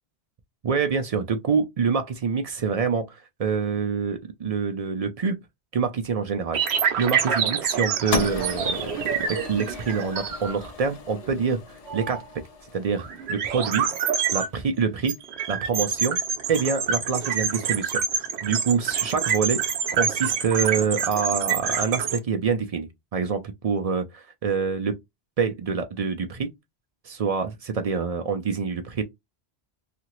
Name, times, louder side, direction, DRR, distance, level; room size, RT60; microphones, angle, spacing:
voice 1, 0.6-5.4 5.7-6.6 7.0-12.4 12.7-13.9 14.3-15.1 15.5-16.2 16.5-19.6 19.9-25.0 25.4-26.5 27.0-29.0, right 5 dB, 60° right, 0.4 m, -26 dB
sound 1, 6.5-10.6 11.1-11.3 11.9-12.2 13.0-14.5 15.1-22.2, right 7 dB, 75° right, 0.9 m, -27 dB
sound 2, 8.1-14.4, left 4 dB, 50° left, 0.5 m, -35 dB
2.8 x 2.5 x 2.9 m
omnidirectional pair, 1.1 m